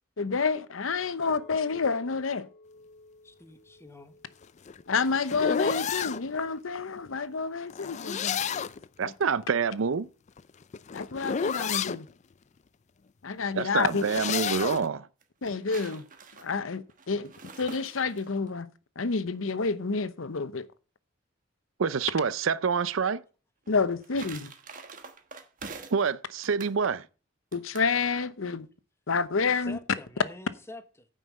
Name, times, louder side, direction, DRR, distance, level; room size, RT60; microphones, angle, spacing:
voice 1, 0.2-2.5 4.9-8.4 10.9-12.1 13.2-14.0 15.4-16.0 16.4-17.3 17.6-18.7 19.0-20.7 23.7-24.5 27.5-28.7 29.1-29.8, left 4 dB, 90° left, 0.8 m, -29 dB
Chink clink, 1.2-6.4, left 2 dB, 55° left, 1.4 m, -56 dB
voice 2, 3.2-4.2 29.5-31.1, left 2 dB, 15° left, 1.0 m, -47 dB
sound 1, 4.4-6.2 7.7-8.9 10.3-12.0 13.8-14.9, left 7 dB, 35° left, 0.4 m, -31 dB
voice 3, 9.0-10.1 13.6-15.1 21.8-23.2 25.9-27.1, right 5 dB, 85° right, 0.5 m, -27 dB
sound 2, 13.8-14.4 15.2-18.5 23.6-26.1 26.4-26.8 27.5-27.9, right 4 dB, 40° right, 1.3 m, -46 dB
9.3 x 5.3 x 7.3 m
head